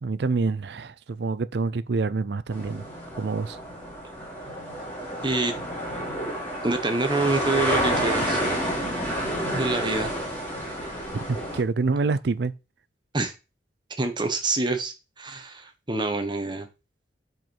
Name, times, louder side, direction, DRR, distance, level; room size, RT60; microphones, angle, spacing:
voice 1, 0.0-2.9 3.2-3.6 11.1-12.5, right 4 dB, 70° right, 0.5 m, -27 dB
sound 1, 2.5-11.6, equal, 10° left, 2.9 m, -29 dB
voice 2, 5.2-5.5 6.6-8.4 9.5-10.1 13.1-13.3 14.0-16.7, right 3 dB, 25° right, 1.1 m, -26 dB
7.8 x 4.6 x 4.6 m
head